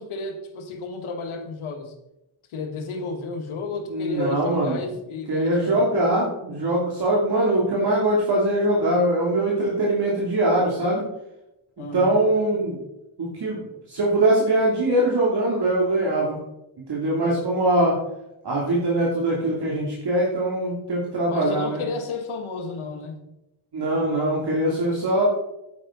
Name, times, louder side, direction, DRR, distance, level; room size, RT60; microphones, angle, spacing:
voice 1, 0.0-1.9 2.5-5.8 11.8-12.2 21.3-23.2, left 3 dB, 85° left, 6 dB, 1.6 m, -32 dB
voice 2, 3.9-4.8 5.3-11.0 11.8-12.8 13.2-13.6 13.9-16.4 16.9-18.0 18.4-21.8 23.7-25.2, right 1 dB, 55° right, -4 dB, 2.8 m, -22 dB
10.5 x 9.7 x 3.8 m, 0.91 s
cardioid pair, 105°, 48 cm